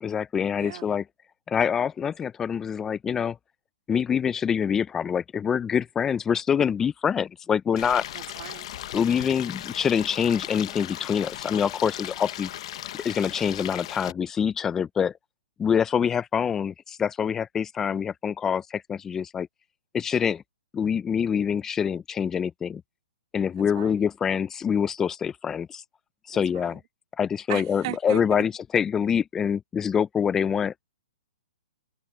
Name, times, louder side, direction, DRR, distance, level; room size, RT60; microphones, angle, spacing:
voice 1, 0.0-1.0 1.5-3.4 3.9-8.0 8.9-12.5 13.0-15.1 15.6-19.5 19.9-20.4 20.7-22.8 23.3-25.8 26.3-26.8 27.2-30.7, left 7 dB, 10° left, 0.4 m, -25 dB
voice 2, 0.6-0.9 8.1-8.8 23.6-24.0 26.3-26.8 27.5-28.4, right 16 dB, 40° right, 2.6 m, -37 dB
Stream, 7.8-14.1, left 13 dB, 45° left, 0.9 m, -37 dB
hypercardioid pair, 165°, 4 cm